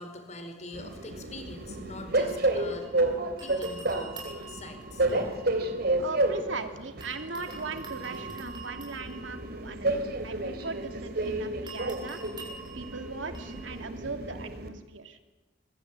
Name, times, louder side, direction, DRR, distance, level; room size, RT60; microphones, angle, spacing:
voice 1, 0.0-2.9 3.4-5.2, left 2 dB, 35° left, 7 dB, 4.7 m, -44 dB
Train, 0.7-14.7, right 2 dB, 50° right, 3.4 m, -31 dB
sound 1, 1.5-3.0 3.4-6.6 7.0-13.8, right 5 dB, 25° right, 6.8 m, -47 dB
voice 2, 6.0-12.2 12.7-15.2, right 3 dB, 75° right, 7 dB, 2.6 m, -39 dB
25.5 x 22.5 x 8.8 m, 1.1 s
head